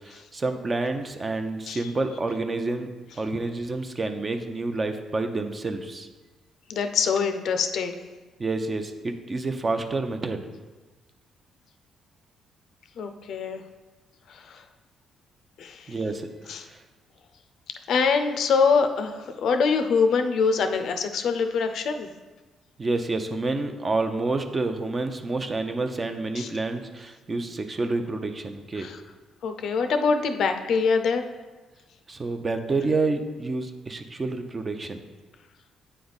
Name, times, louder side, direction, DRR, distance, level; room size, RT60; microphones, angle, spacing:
voice 1, 0.3-2.9 3.2-6.1 8.4-10.4 15.9-16.2 22.8-28.9 32.1-35.0, right 3 dB, 30° right, 6 dB, 0.6 m, -28 dB
voice 2, 6.7-8.0 13.0-13.6 14.3-14.6 15.6-16.0 16.5-16.7 17.9-22.1 26.4-26.5 28.8-29.0 29.4-31.2, left 5 dB, 70° left, 7 dB, 0.5 m, -24 dB
8.6 x 3.3 x 4.0 m, 1.2 s
cardioid pair, 90°, 0 cm